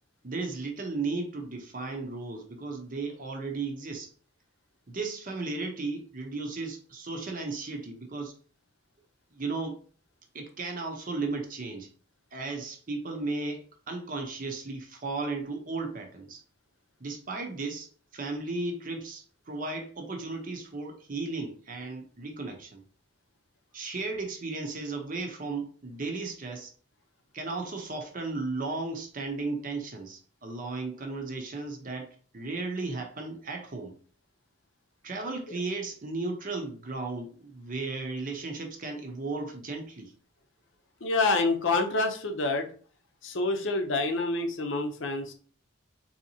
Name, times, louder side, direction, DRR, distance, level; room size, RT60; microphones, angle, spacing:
voice 1, 0.2-4.1 4.9-8.3 9.3-9.8 10.3-11.9 12.3-16.4 17.0-22.8 23.7-26.7 27.3-34.0 35.0-40.1, right 3 dB, 40° right, 4 dB, 0.7 m, -35 dB
voice 2, 41.0-42.7 43.2-45.3, left 3 dB, 65° left, 5 dB, 0.6 m, -27 dB
3.8 x 2.8 x 2.7 m, 0.43 s
head